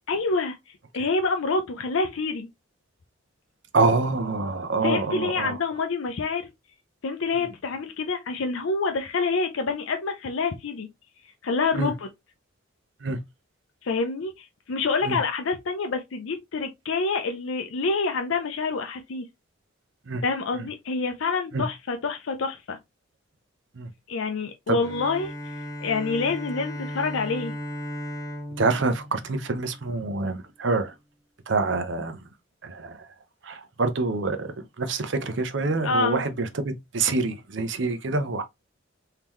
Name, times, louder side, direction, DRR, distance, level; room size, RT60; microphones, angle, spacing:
voice 1, 0.1-0.6 0.9-2.5 4.8-6.4 7.0-10.9 11.4-12.1 13.8-19.3 20.2-22.8 24.1-27.5 35.8-36.2, left 4 dB, 70° left, 0.5 m, -27 dB
voice 2, 3.7-5.6 7.4-7.5 11.7-11.9 13.0-13.2 15.0-15.2 20.1-20.2 21.5-21.6 23.8-23.9 24.7-24.8 28.6-30.9 31.5-32.2 32.6-33.1 33.4-38.4, right 3 dB, 60° right, 0.6 m, -26 dB
Bowed string instrument, 24.8-30.3, equal, 15° left, 0.5 m, -36 dB
3.7 x 2.8 x 3.0 m
head